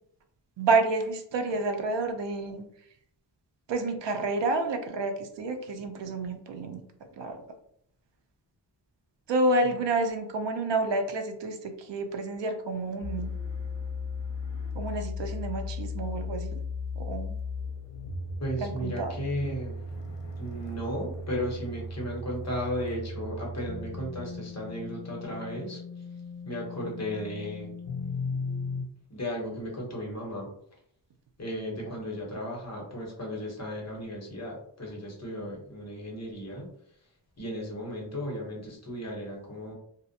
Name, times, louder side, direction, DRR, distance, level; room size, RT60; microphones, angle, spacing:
voice 1, 0.6-2.6 3.7-6.8 7.2-7.4 9.3-13.3 14.7-16.6 17.0-17.4 18.6-19.1, right 2 dB, 75° right, 6 dB, 0.5 m, -29 dB
sound 1, 13.0-28.9, left 3 dB, 85° left, 0.6 m, -36 dB
voice 2, 18.4-19.8 20.4-25.8 26.4-27.7 29.1-30.5 31.4-36.7 37.4-39.7, equal, 40° left, -2 dB, 0.8 m, -35 dB
2.5 x 2.0 x 2.6 m, 0.69 s
wide cardioid pair, 145°, 43 cm